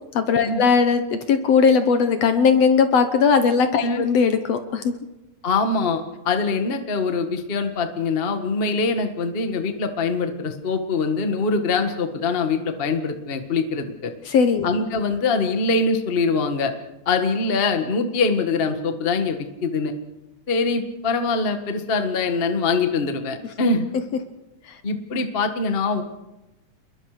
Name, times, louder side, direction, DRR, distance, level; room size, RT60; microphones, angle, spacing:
voice 1, 0.1-4.9 14.3-14.7 24.7-24.8, left 6 dB, 65° left, 9 dB, 2.0 m, -18 dB
voice 2, 5.4-14.1 14.6-16.7 17.0-19.9 20.5-23.9 24.8-26.0, left 4 dB, 30° left, 6 dB, 1.2 m, -23 dB
28.0 x 21.0 x 5.0 m, 0.99 s
omnidirectional pair, 3.5 m